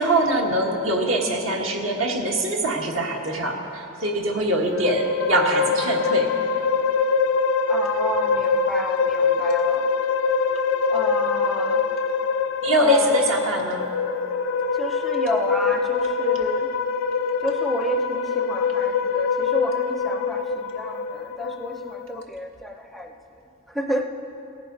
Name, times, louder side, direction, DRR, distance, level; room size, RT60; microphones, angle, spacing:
voice 1, 0.0-6.3 12.6-13.8, right 1 dB, 70° right, 1 dB, 1.5 m, -23 dB
sound 1, 4.6-22.2, left 5 dB, 85° left, 0.5 m, -24 dB
voice 2, 7.7-9.9 10.9-11.9 12.8-13.2 14.7-16.7 17.4-23.1 23.7-24.0, equal, ahead, 4 dB, 0.5 m, -30 dB
17.5 x 10.5 x 3.9 m, 3.0 s
head